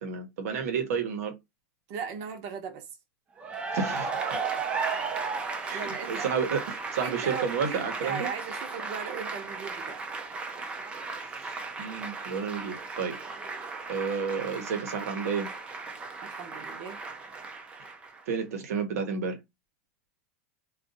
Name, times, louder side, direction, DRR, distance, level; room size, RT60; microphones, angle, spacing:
voice 1, 0.0-1.3 3.7-4.4 5.6-8.3 11.8-13.2 13.9-15.5 18.3-19.4, right 6 dB, 85° right, 1.0 m, -31 dB
voice 2, 1.9-2.9 4.3-4.5 5.3-6.3 7.0-10.0 16.2-17.0, right 7 dB, 45° right, 0.8 m, -38 dB
Cheering / Applause, 3.4-18.3, right 4 dB, 15° right, 0.4 m, -35 dB
2.5 x 2.4 x 3.9 m
supercardioid pair, 165°, 8 cm